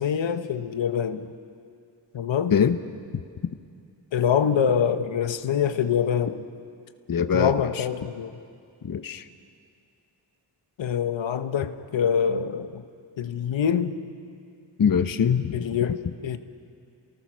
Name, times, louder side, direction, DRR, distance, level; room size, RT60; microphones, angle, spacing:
voice 1, 0.0-1.3 2.1-2.6 4.1-6.4 7.3-8.3 10.8-12.9 13.2-13.9 15.5-16.4, left 8 dB, 75° left, 9 dB, 1.1 m, -25 dB
voice 2, 7.1-7.8 8.8-9.3 14.8-15.6, left 7 dB, 45° left, 10 dB, 1.0 m, -23 dB
29.5 x 19.0 x 6.3 m, 2.4 s
cardioid pair, 55°, 45 cm